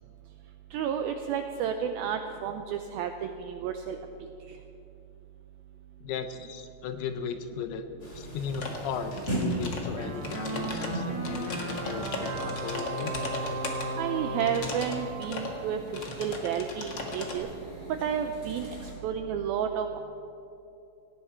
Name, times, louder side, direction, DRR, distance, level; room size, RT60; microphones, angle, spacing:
voice 1, 0.7-4.0 14.0-15.8 16.2-17.5 18.0-18.7 19.0-20.0, right 8 dB, 85° right, 6 dB, 2.1 m, -31 dB
voice 2, 6.0-7.8 8.1-13.1, left 7 dB, 80° left, 9 dB, 2.4 m, -36 dB
sound 1, 8.0-18.9, right 1 dB, 20° left, 2.4 m, -39 dB
sound 2, 8.5-8.8 9.2-9.9 10.2-13.9 14.4-14.9 15.2-15.5 15.9-17.4, left 3 dB, 60° left, 1.2 m, -37 dB
sound 3, 10.0-16.1, right 2 dB, 65° right, 1.3 m, -36 dB
18.5 x 16.5 x 4.4 m, 2.9 s
omnidirectional pair, 5.0 m